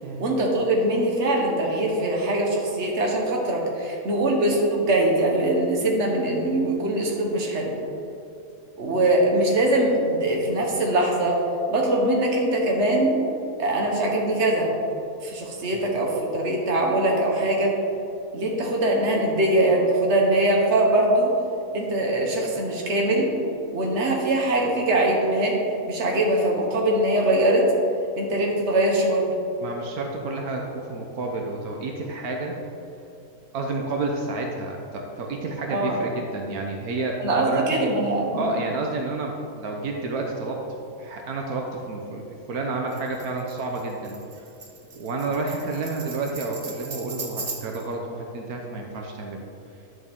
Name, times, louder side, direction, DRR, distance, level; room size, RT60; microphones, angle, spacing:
voice 1, 0.2-7.7 8.8-11.4 11.7-13.2 13.6-14.7 15.2-17.7 18.3-21.3 21.7-23.3 23.7-25.6 25.9-27.7 28.2-29.3 35.7-36.0 37.2-38.5, right 1 dB, 50° right, -1 dB, 1.5 m, -22 dB
voice 2, 29.6-32.6 33.5-37.9 38.3-42.2 42.5-44.4 44.9-49.4, right 3 dB, 80° right, 1 dB, 1.3 m, -30 dB
Tambourine, 42.9-47.9, right 4 dB, 35° right, 0.7 m, -38 dB
10.5 x 6.3 x 3.6 m, 2.6 s
omnidirectional pair, 1.5 m